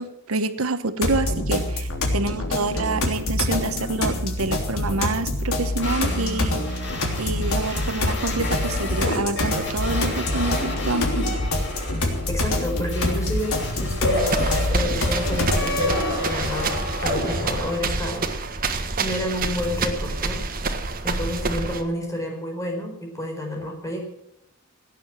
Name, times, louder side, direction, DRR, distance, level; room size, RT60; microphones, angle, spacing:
voice 1, 0.0-6.6 7.2-11.4, right 3 dB, 85° right, 11 dB, 1.0 m, -27 dB
sound 1, 1.0-16.0, left 1 dB, 85° left, 3.3 m, -26 dB
sound 2, 5.8-17.7, left 2 dB, 60° left, 6.8 m, -30 dB
voice 2, 12.3-14.3 14.7-20.4 21.0-24.0, left 1 dB, 15° left, 1 dB, 4.6 m, -30 dB
sound 3, 14.2-21.8, right 3 dB, 45° right, 1.5 m, -28 dB
17.5 x 9.4 x 7.8 m, 0.80 s
head